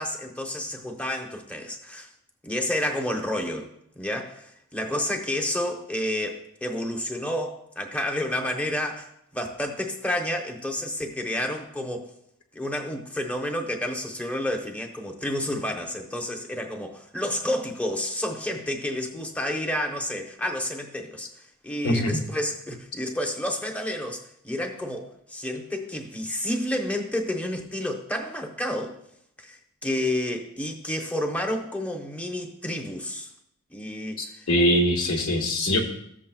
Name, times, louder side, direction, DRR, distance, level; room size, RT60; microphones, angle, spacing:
voice 1, 0.0-2.1 2.4-3.7 4.0-9.1 9.3-12.1 12.5-21.3 21.6-28.9 29.4-33.3 33.7-34.4, left 1 dB, 5° left, 2 dB, 0.9 m, -30 dB
voice 2, 21.8-22.2 34.2-35.8, equal, 75° left, 2 dB, 1.4 m, -23 dB
14.0 x 7.3 x 2.3 m, 0.75 s
head